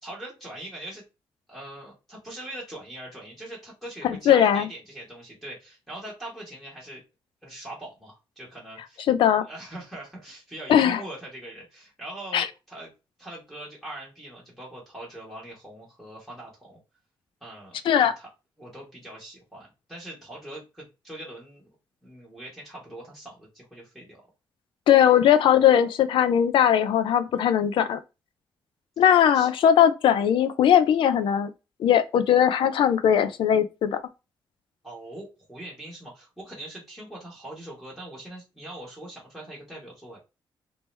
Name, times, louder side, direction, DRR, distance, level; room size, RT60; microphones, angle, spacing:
voice 1, 0.0-1.0 1.5-7.0 7.4-9.1 9.4-12.9 13.2-16.8 17.4-18.3 18.6-21.7 22.0-24.2 29.1-29.5 34.8-40.2, right 1 dB, 5° left, 1.4 m, -42 dB
voice 2, 4.3-4.7 9.1-9.4 10.7-11.0 12.3-12.5 17.9-18.1 24.9-28.0 29.0-31.5 31.8-34.0, left 9 dB, 75° left, 0.5 m, -19 dB
3.5 x 2.9 x 3.2 m
wide cardioid pair, 180°, 9 cm